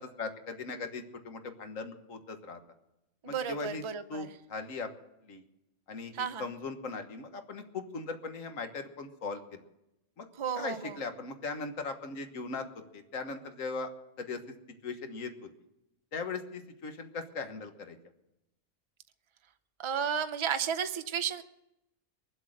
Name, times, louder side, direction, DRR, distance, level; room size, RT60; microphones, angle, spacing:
voice 1, 0.0-2.6 3.3-3.8 4.1-4.9 5.2-5.4 5.9-9.6 10.2-10.3 10.6-12.7 12.9-13.9 14.2-14.4 14.8-15.3 16.1-18.0, left 4 dB, 80° left, 7 dB, 1.7 m, -39 dB
voice 2, 3.2-4.3 6.1-6.5 10.4-11.0 19.8-21.4, right 7 dB, 30° right, 8 dB, 0.6 m, -33 dB
23.0 x 7.9 x 6.5 m, 0.89 s
omnidirectional pair, 1.4 m